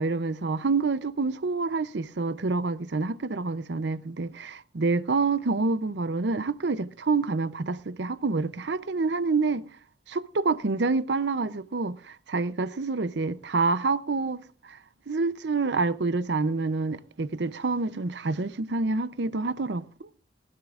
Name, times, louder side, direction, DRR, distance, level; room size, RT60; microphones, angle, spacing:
voice 1, 0.0-9.7 10.1-14.4 14.6-14.8 15.1-19.9, right 3 dB, 65° right, 0.6 m, -27 dB
19.5 x 15.0 x 2.5 m
head